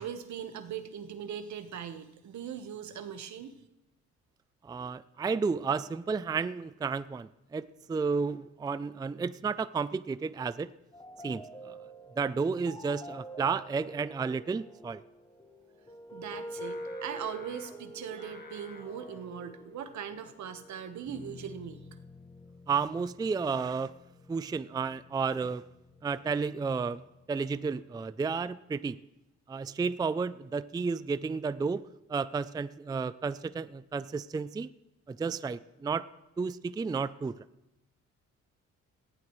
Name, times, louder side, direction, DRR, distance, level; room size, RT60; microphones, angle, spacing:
voice 1, 0.0-3.5 16.1-21.8, right 8 dB, 70° right, 9 dB, 1.3 m, -40 dB
voice 2, 4.6-10.7 11.2-11.8 12.2-15.0 22.7-23.9 24.3-25.7 26.0-27.0 27.3-29.0 29.5-31.8 32.1-34.7 35.1-36.0 36.4-37.4, right 5 dB, 15° right, 15 dB, 0.4 m, -32 dB
sound 1, 10.9-28.6, equal, 15° left, 1.4 m, -48 dB
Singing, 16.6-21.8, left 3 dB, 30° left, 1.4 m, -55 dB
19.0 x 14.5 x 3.2 m, 0.95 s
cardioid pair, 90°, 30 cm